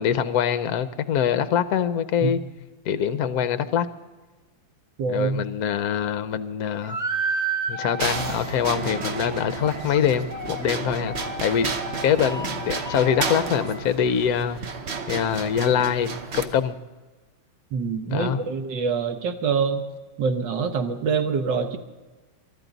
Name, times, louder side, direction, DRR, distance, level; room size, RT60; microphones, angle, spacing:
voice 1, 0.0-2.4 2.9-3.9 5.1-7.0 7.7-11.1 11.4-11.7 12.0-14.6 15.1-16.7 18.1-18.4, left 8 dB, 65° left, 12 dB, 1.0 m, -24 dB
voice 2, 5.0-5.5 17.7-19.8 20.2-21.8, right 5 dB, 65° right, 7 dB, 1.6 m, -25 dB
sound 1, 6.8-13.9, right 3 dB, 15° right, 0.7 m, -33 dB
sound 2, 8.0-16.5, right 4 dB, 45° right, 0.9 m, -32 dB
23.0 x 13.0 x 4.0 m, 1.2 s
omnidirectional pair, 2.2 m